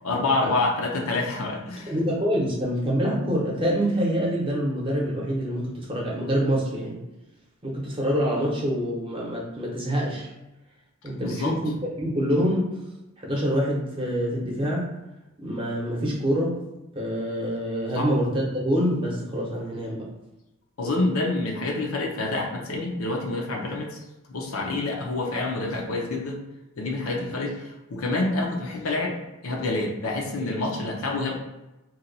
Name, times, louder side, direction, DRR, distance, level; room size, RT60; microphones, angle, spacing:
voice 1, 0.0-1.9 11.2-11.6 17.9-18.1 20.8-24.0 24.3-26.4 26.8-29.2 29.4-31.4, left 2 dB, 75° left, 0 dB, 0.6 m, -27 dB
voice 2, 1.9-7.0 7.6-10.3 11.0-11.7 12.0-12.7 13.2-14.9 15.4-16.6 16.9-20.1, equal, 25° right, -4 dB, 0.8 m, -26 dB
2.8 x 2.3 x 3.9 m, 1.0 s
head